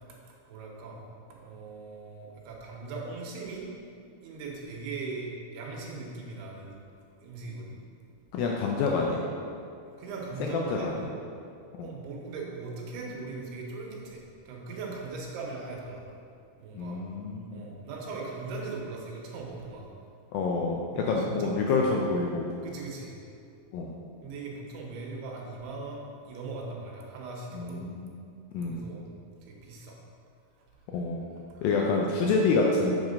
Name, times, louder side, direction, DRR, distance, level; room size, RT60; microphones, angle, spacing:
voice 1, 0.5-1.0 1.3-3.7 4.2-6.8 7.2-7.8 10.0-10.9 11.8-16.1 16.6-17.0 17.5-19.9 20.9-21.7 22.6-23.1 24.2-27.8 28.5-29.0 29.4-30.0 31.5-31.7, right 3 dB, 80° right, -2 dB, 3.0 m, -39 dB
voice 2, 8.3-9.2 10.4-11.1 11.8-11.9 16.7-17.6 20.3-22.5 23.7-23.9 27.5-28.1 28.5-28.9 30.9-31.2 31.6-32.9, left 3 dB, 80° left, -1 dB, 2.1 m, -27 dB
7.3 x 4.7 x 5.1 m, 2.5 s
omnidirectional pair, 4.6 m